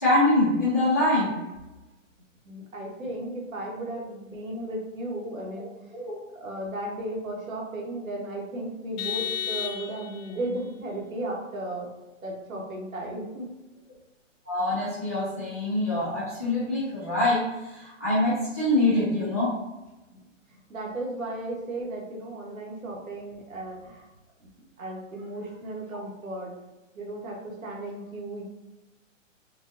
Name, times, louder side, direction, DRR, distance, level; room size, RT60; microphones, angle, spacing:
voice 1, 0.0-1.4 5.9-6.1 14.4-19.5, left 1 dB, 15° left, -11 dB, 0.4 m, -24 dB
voice 2, 2.4-5.7 6.3-11.9 12.2-13.4 20.5-24.1 24.8-26.5 26.9-28.5, right 1 dB, 85° right, -1 dB, 1.1 m, -35 dB
Vehicle horn car horn honking, 9.0-10.4, left 9 dB, 75° left, 0.5 m, -32 dB
3.5 x 2.3 x 2.6 m, 1.0 s
hypercardioid pair, 155°, 39 cm